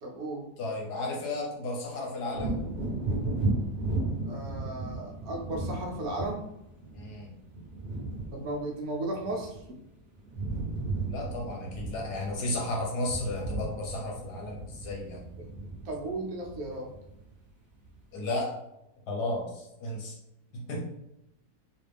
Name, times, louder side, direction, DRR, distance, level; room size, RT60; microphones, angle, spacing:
voice 1, 0.0-0.4 4.2-6.5 8.3-9.6 15.4-15.5 15.8-16.9, right 2 dB, 65° right, 0 dB, 1.3 m, -35 dB
voice 2, 0.6-2.6 6.9-7.3 11.0-15.2 18.1-18.5 19.1-20.2 20.5-21.0, left 2 dB, 90° left, -1 dB, 1.6 m, -34 dB
Wind / Thunder, 2.3-9.9 10.2-17.4 17.8-18.0, right 2 dB, 40° right, 1.4 m, -35 dB
3.9 x 2.4 x 3.4 m, 0.87 s
omnidirectional pair, 1.7 m